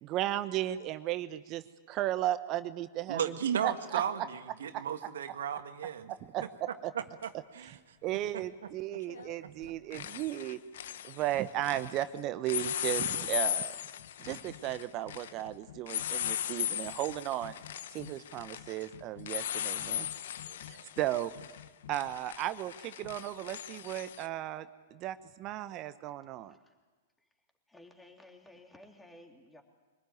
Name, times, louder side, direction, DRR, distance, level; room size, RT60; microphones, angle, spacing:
voice 1, 0.0-3.3 3.6-4.0 6.3-6.4 6.8-6.9 8.0-10.6 11.0-13.8 14.2-17.5 17.9-20.1 20.6-21.3 21.9-26.5, right 14 dB, 35° right, 13 dB, 1.0 m, -35 dB
voice 2, 3.1-6.1 6.9-7.8 8.3-8.4 9.4-9.5 20.5-20.8, right 8 dB, 70° right, 8 dB, 1.8 m, -35 dB
sound 1, 7.2-7.3 9.1-9.4 9.6-12.1 12.4-24.3, left 11 dB, 60° left, 0.9 m, -38 dB
voice 3, 27.7-29.6, left 1 dB, 5° left, 3 dB, 3.2 m, -55 dB
24.5 x 20.5 x 9.4 m, 1.3 s
figure-of-eight pair, 105°, 0 cm